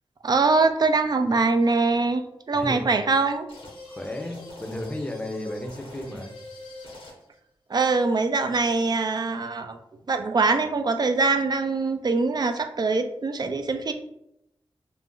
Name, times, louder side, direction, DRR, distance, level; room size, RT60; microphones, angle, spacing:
voice 1, 0.2-3.5 7.7-9.8 10.1-13.9, right 3 dB, 45° right, 7 dB, 0.4 m, -23 dB
voice 2, 2.5-2.9 3.9-6.3, left 1 dB, 10° left, 3 dB, 0.6 m, -34 dB
sound 1, 3.5-7.4, left 2 dB, 70° left, 0.8 m, -43 dB
2.5 x 2.1 x 3.7 m, 0.81 s
cardioid pair, 55°, 9 cm